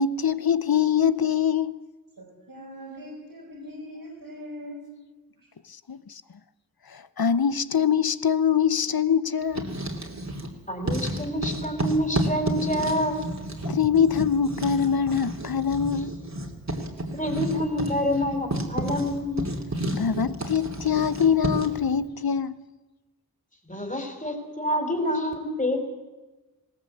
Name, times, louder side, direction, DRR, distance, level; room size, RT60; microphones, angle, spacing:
voice 1, 0.0-1.8 5.9-6.2 6.9-9.7 13.6-16.3 19.9-22.6, left 7 dB, 80° left, 0.8 m, -24 dB
voice 2, 2.2-4.8 5.4-5.5, equal, 90° right, 5.5 m, -41 dB
Writing, 9.4-10.5 10.8-21.8, right 1 dB, 50° right, 2.9 m, -31 dB
voice 3, 10.7-13.2 17.1-19.5 23.7-25.9, equal, 20° left, 4.1 m, -27 dB
19.5 x 18.0 x 8.5 m
wide cardioid pair, 60°, 36 cm